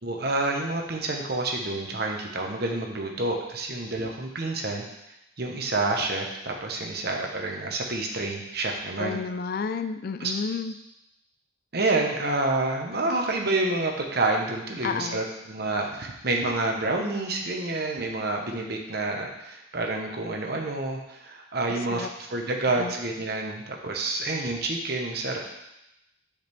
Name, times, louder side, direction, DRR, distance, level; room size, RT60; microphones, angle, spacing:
voice 1, 0.0-4.8 5.4-9.2 10.2-10.3 11.7-25.4, right 2 dB, 50° right, 1 dB, 1.1 m, -28 dB
voice 2, 9.0-10.7 14.8-15.2 21.9-22.1 22.8-22.9, left 5 dB, 45° left, 10 dB, 0.4 m, -31 dB
9.4 x 5.1 x 3.6 m, 0.88 s
head